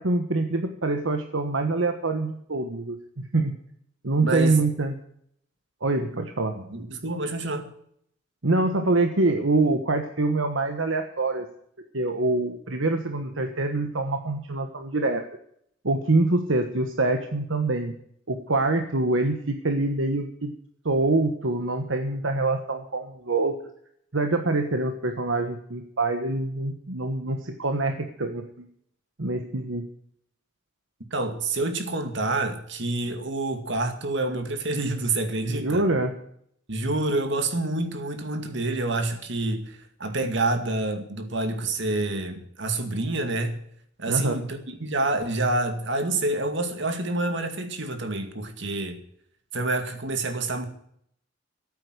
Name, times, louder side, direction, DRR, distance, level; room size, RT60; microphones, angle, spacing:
voice 1, 0.0-3.6 4.0-4.9 5.8-6.6 8.4-11.5 11.9-15.3 15.8-17.9 18.3-20.5 20.8-23.6 24.1-28.7 29.2-29.8 35.5-36.1 44.1-44.3, right 2 dB, 80° right, 1.3 m, -25 dB
voice 2, 4.2-4.6 6.5-7.7 31.1-35.8 36.7-43.6 44.0-49.0 49.5-50.7, right 2 dB, 65° right, 2.2 m, -27 dB
14.5 x 8.7 x 7.9 m
head